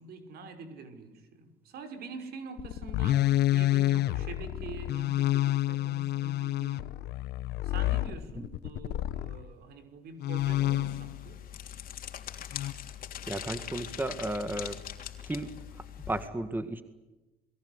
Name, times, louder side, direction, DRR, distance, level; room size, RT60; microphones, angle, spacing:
voice 1, 0.0-6.9 7.6-11.4, right 3 dB, 70° right, 8 dB, 5.6 m, -45 dB
sound 1, 2.6-9.4 10.2-11.2 12.5-12.7, left 14 dB, 75° left, 1.3 m, -29 dB
sound 2, 10.4-16.3, left 10 dB, 55° left, 3.3 m, -42 dB
voice 2, 13.3-14.8 15.2-15.5 16.1-16.8, right 1 dB, 10° right, 10 dB, 1.9 m, -33 dB
28.5 x 21.5 x 8.2 m, 1.1 s
cardioid pair, 110°, 17 cm